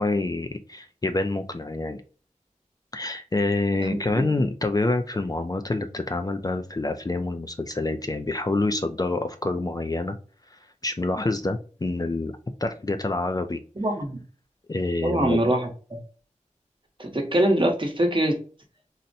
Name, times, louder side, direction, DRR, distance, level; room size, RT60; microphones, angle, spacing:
voice 1, 0.0-2.0 2.9-10.2 10.5-12.3 12.6-13.6 14.7-15.4, left 2 dB, 30° left, 6 dB, 0.4 m, -27 dB
voice 2, 3.8-4.2 13.8-14.2 15.0-15.7 17.0-18.3, right 1 dB, 40° right, 2 dB, 1.0 m, -23 dB
4.0 x 2.1 x 2.6 m, 0.39 s
wide cardioid pair, 60°, 13 cm